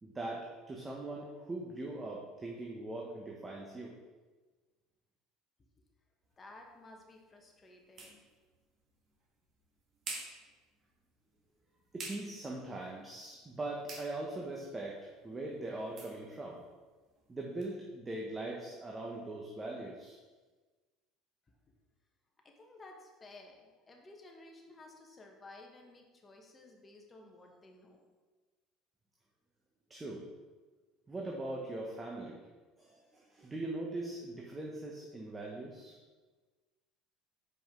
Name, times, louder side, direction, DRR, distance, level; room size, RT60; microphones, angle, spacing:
voice 1, 0.0-3.9 11.9-16.6 17.3-20.2 29.9-30.3 31.1-32.4 32.8-36.0, right 2 dB, 20° right, -2 dB, 0.9 m, -41 dB
sound 1, 6.2-17.7, right 3 dB, 45° right, 1.6 m, -52 dB
voice 2, 6.4-8.2 22.4-28.0, left 2 dB, 25° left, 1 dB, 1.1 m, -55 dB
5.3 x 5.0 x 3.7 m, 1.3 s
supercardioid pair, 85°, 0 cm